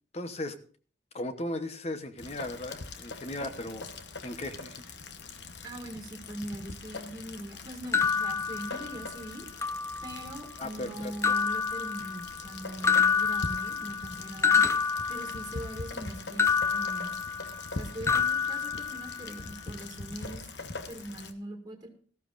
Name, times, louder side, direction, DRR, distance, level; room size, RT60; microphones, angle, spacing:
voice 1, 0.1-0.6 1.1-3.9 4.2-4.8 10.6-11.4, left 1 dB, 35° left, 9 dB, 0.9 m, -37 dB
Rain, 2.2-21.3, left 3 dB, 65° left, 1.1 m, -42 dB
voice 2, 5.6-9.5 10.0-17.2 17.7-20.4 20.9-21.9, right 1 dB, 20° right, 3 dB, 2.2 m, -42 dB
sound 1, 7.9-9.2 9.6-10.4 11.2-12.5 12.8-15.8 16.4-17.8 18.1-19.4, left 6 dB, 15° left, 0.5 m, -28 dB
17.5 x 14.0 x 2.5 m, 0.42 s
head